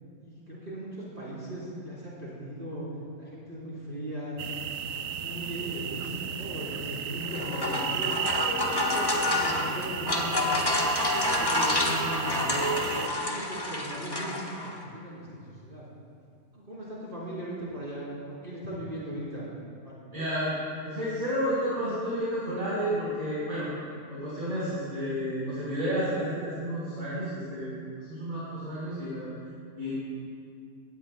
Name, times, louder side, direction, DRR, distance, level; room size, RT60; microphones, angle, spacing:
voice 1, 0.2-2.9 3.2-4.4 4.9-8.1 8.6-10.6 11.0-12.7 13.2-15.9 16.5-19.5 19.8-20.0, right 1 dB, 35° right, -8 dB, 3.7 m, -38 dB
sound 1, 4.4-13.1, right 8 dB, 75° right, 1.0 m, -35 dB
sound 2, 7.2-14.8, left 1 dB, 20° left, 1.0 m, -28 dB
voice 2, 20.1-23.7 24.1-29.3 29.8-29.9, equal, 55° right, -11 dB, 4.5 m, -31 dB
19.5 x 17.0 x 2.3 m, 2.3 s
omnidirectional pair, 1.5 m